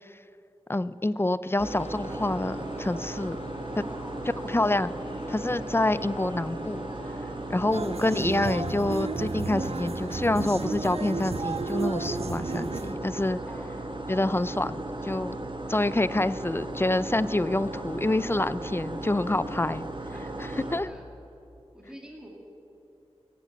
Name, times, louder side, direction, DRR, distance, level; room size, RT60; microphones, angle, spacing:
voice 1, 0.7-3.4 4.5-4.9 5.3-6.8 7.5-13.4 14.1-15.4 15.7-19.8 20.7-20.9, left 2 dB, 20° left, 16 dB, 0.4 m, -27 dB
sound 1, 1.6-8.4, left 3 dB, 75° left, 0.6 m, -49 dB
sound 2, 1.6-20.8, right 2 dB, 50° right, 1.3 m, -36 dB
voice 2, 3.8-4.2 7.4-7.6 13.4-13.8 20.1-21.0 21.7-22.3, equal, 5° right, -2 dB, 2.4 m, -47 dB
sound 3, 7.7-13.0, right 4 dB, 70° right, 0.6 m, -33 dB
17.0 x 8.3 x 8.0 m, 2.9 s
wide cardioid pair, 60°, 11 cm